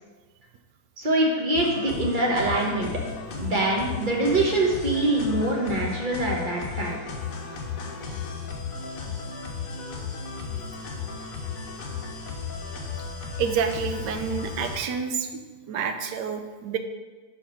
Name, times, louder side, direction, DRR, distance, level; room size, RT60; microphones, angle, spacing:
voice 1, 1.0-2.9 3.3-7.0, right 2 dB, 30° right, -2 dB, 1.2 m, -24 dB
sound 1, 1.5-14.8, left 5 dB, 60° left, 1.2 m, -35 dB
voice 2, 13.4-15.3 15.7-16.8, right 6 dB, 80° right, 7 dB, 1.3 m, -28 dB
5.2 x 5.2 x 5.7 m, 1.3 s
omnidirectional pair, 1.9 m